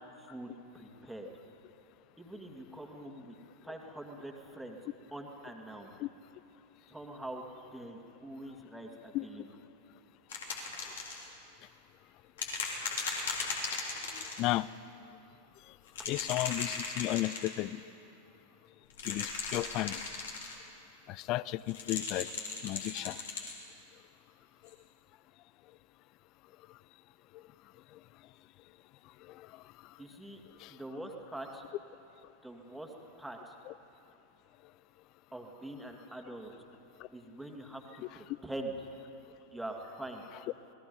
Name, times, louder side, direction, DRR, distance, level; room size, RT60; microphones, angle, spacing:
voice 1, 0.2-1.3 2.2-3.3 3.6-4.8 5.1-5.9 6.9-7.4 7.7-9.5 16.0-16.1 30.0-30.4 30.7-31.6 32.4-32.9 33.2-33.5 35.3-36.5 37.1-38.7 39.5-40.2, right 1 dB, 5° right, 2 dB, 2.2 m, -44 dB
sound 1, 10.3-11.3 12.4-14.5 15.9-17.5 18.9-20.6 21.7-23.6 24.7-24.8, left 5 dB, 60° left, 3.4 m, -37 dB
voice 2, 16.1-17.8 19.1-20.0 21.1-22.3 22.6-23.2 29.4-29.5 30.6-30.7 33.7-33.8, left 17 dB, 40° left, 20 dB, 0.4 m, -33 dB
27.5 x 19.0 x 5.4 m, 2.8 s
figure-of-eight pair, 90°, 0 cm